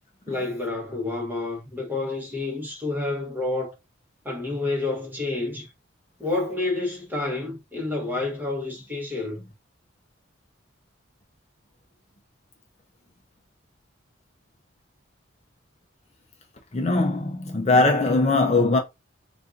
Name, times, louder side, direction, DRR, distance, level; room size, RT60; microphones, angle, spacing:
voice 1, 0.3-3.7 4.2-5.7 6.2-9.4, left 2 dB, 10° right, 1.0 m, -29 dB
voice 2, 16.7-18.8, left 2 dB, 35° left, 0.5 m, -20 dB
4.1 x 2.4 x 2.5 m
head